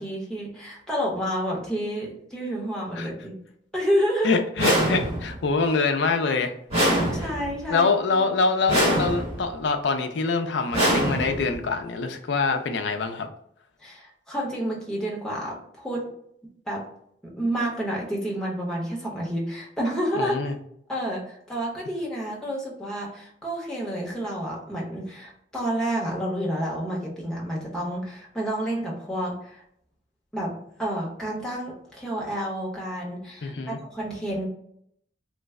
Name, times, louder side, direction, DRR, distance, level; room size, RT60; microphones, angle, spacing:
voice 1, 0.0-3.4 3.7-4.4 7.1-7.9 8.1-8.3 13.8-16.1 16.7-16.8 17.4-20.3 20.9-29.6 30.3-30.5 30.8-34.5, equal, 5° left, -5 dB, 0.8 m, -29 dB
voice 2, 4.2-6.5 7.2-7.3 7.7-13.3 20.2-20.6 33.4-33.8, left 4 dB, 80° left, 6 dB, 0.4 m, -25 dB
sound 1, 4.6-5.4 6.7-7.6 8.7-9.5 10.7-11.6, right 1 dB, 35° right, 1.3 m, -24 dB
3.1 x 2.1 x 3.5 m, 0.70 s
head